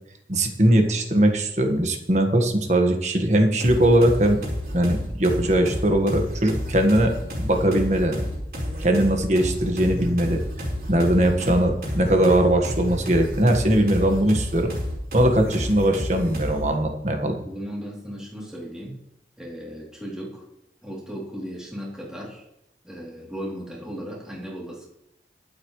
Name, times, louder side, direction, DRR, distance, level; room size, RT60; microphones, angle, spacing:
voice 1, 0.3-4.4 4.7-7.1 7.4-8.2 8.8-10.4 10.9-14.7 15.1-17.3, right 1 dB, 40° right, 4 dB, 1.6 m, -20 dB
sound 1, 3.6-16.7, equal, 55° right, 4.6 m, -30 dB
voice 2, 17.4-19.0 19.4-20.4 20.8-22.4 22.8-24.9, equal, 5° right, -5 dB, 3.2 m, -36 dB
23.0 x 8.2 x 3.2 m, 0.83 s
head